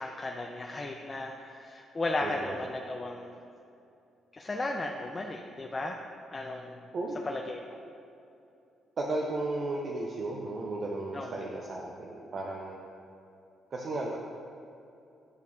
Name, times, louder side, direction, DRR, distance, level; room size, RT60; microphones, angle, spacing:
voice 1, 0.0-3.4 4.3-6.0 6.3-6.8 7.2-7.8 11.1-11.4, left 2 dB, 25° left, 1 dB, 0.4 m, -35 dB
voice 2, 2.2-2.5 6.9-7.2 9.0-12.8 13.7-14.2, right 2 dB, 50° right, -1 dB, 0.5 m, -34 dB
9.9 x 4.5 x 2.4 m, 2.7 s
cardioid pair, 90°, 0 cm